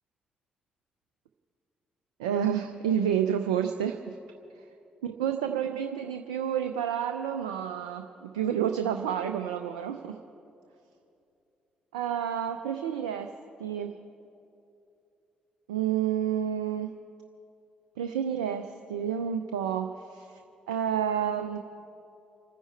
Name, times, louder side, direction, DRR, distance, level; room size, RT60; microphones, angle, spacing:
voice 1, 2.2-4.2 5.0-10.1 11.9-13.3 13.6-14.0 15.7-16.9 18.0-20.4 20.7-21.6, right 9 dB, 90° right, 7 dB, 0.5 m, -29 dB
27.5 x 10.0 x 4.4 m, 2.7 s
hypercardioid pair, 45°, 4 cm